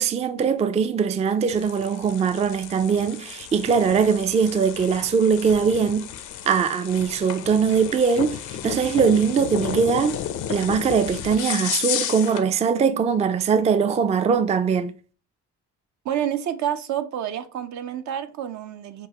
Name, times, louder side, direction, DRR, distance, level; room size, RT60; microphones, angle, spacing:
voice 1, 0.0-6.1 6.5-10.2 10.5-14.9, right 6 dB, 25° right, 0.3 m, -21 dB
sound 1, 1.5-12.5, left 10 dB, 75° left, 0.6 m, -33 dB
voice 2, 16.0-19.1, right 10 dB, 70° right, 0.6 m, -28 dB
6.1 x 2.4 x 2.9 m
cardioid pair, 90°, 30 cm